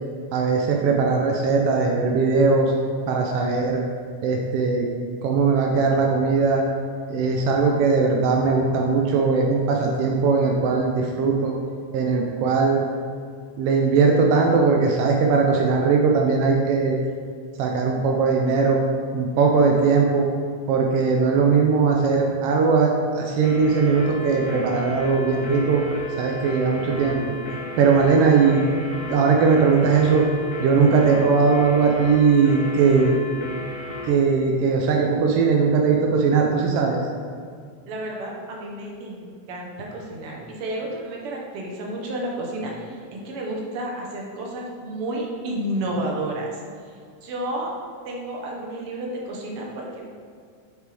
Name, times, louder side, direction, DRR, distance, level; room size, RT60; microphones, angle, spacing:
voice 1, 0.3-2.7 3.1-3.8 4.2-4.9 5.2-6.6 7.1-11.5 11.9-12.8 13.6-17.0 17.6-18.8 19.1-20.3 20.7-25.8 26.2-27.2 27.8-28.6 29.1-30.3 30.6-33.2 34.1-37.0, right 5 dB, 80° right, 0 dB, 1.3 m, -19 dB
sound 1, 23.4-34.2, left 2 dB, 80° left, 2.3 m, -35 dB
voice 2, 37.9-46.6 47.2-47.7 48.0-50.0, right 1 dB, 65° right, -1 dB, 1.6 m, -31 dB
7.9 x 5.0 x 3.4 m, 2.2 s
omnidirectional pair, 3.3 m